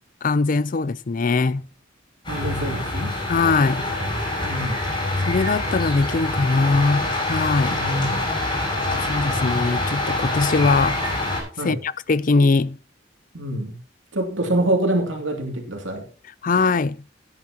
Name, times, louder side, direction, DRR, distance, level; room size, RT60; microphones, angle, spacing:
voice 1, 0.2-1.7 3.3-3.9 5.3-7.8 9.0-11.0 11.6-12.8 16.4-17.0, left 3 dB, 45° left, 0.5 m, -21 dB
sound 1, 2.2-11.4, left 2 dB, 25° left, 7.7 m, -25 dB
voice 2, 2.3-3.1 4.4-4.8 7.7-8.2 11.6-11.8 13.3-13.8 14.1-16.0, right 1 dB, 85° right, 2.7 m, -25 dB
17.0 x 9.8 x 2.9 m
head